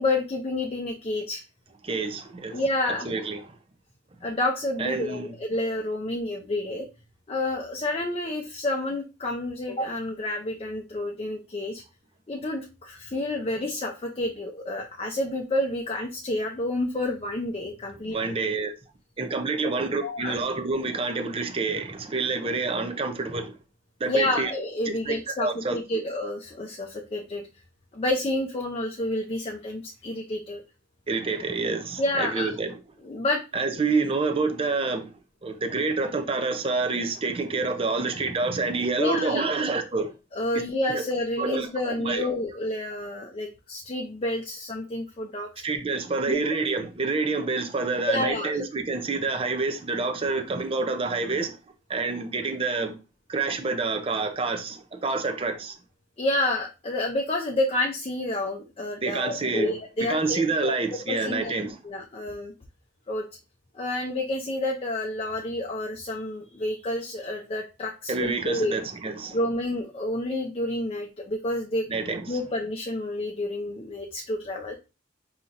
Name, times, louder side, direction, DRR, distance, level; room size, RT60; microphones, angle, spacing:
voice 1, 0.0-1.4 2.5-3.1 4.2-6.9 7.3-11.8 12.3-18.2 19.7-20.4 24.1-27.5 27.9-30.6 32.0-32.5 33.0-33.4 39.0-39.5 40.3-45.5 46.3-46.4 48.1-48.5 56.2-60.8 61.1-61.5 61.8-62.5 63.1-63.2 63.7-68.7 69.3-71.9 72.3-74.7, left 1 dB, 30° left, 0.5 m, -29 dB
voice 2, 1.8-3.4 4.8-5.3 18.1-18.7 19.2-23.5 24.0-24.5 24.9-26.0 31.1-32.7 33.5-35.1 35.4-40.1 40.9-41.0 41.4-42.3 45.6-51.5 51.9-52.9 53.3-55.8 59.0-59.7 60.1-61.8 68.1-69.4 71.9-72.4, right 3 dB, 30° right, 0.6 m, -28 dB
5.4 x 2.9 x 2.5 m
head